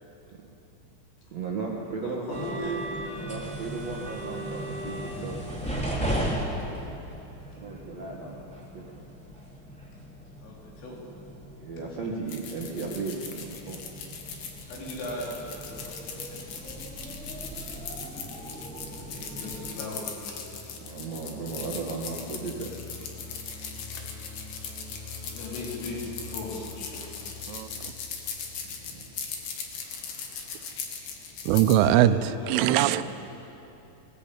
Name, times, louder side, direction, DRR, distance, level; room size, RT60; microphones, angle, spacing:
voice 1, 1.3-2.7 3.2-5.4 7.6-8.5 8.7-9.0 11.6-13.8 20.8-22.7 28.6-29.1, right 4 dB, 60° right, 1.8 m, -36 dB
voice 2, 2.0-2.8 10.4-11.0 14.6-15.4 15.7-16.5 18.9-20.5 25.2-27.3 31.7-33.0, left 1 dB, 80° left, 6.6 m, -38 dB
sound 1, 2.3-19.7, right 1 dB, ahead, 2.5 m, -37 dB
sound 2, 12.3-31.8, left 6 dB, 60° left, 3.4 m, -39 dB
sound 3, 19.4-29.4, left 4 dB, 20° right, 2.4 m, -46 dB
voice 3, 31.5-32.2 32.5-33.0, right 13 dB, 85° right, 3.2 m, -20 dB
21.0 x 19.0 x 8.7 m
omnidirectional pair, 5.7 m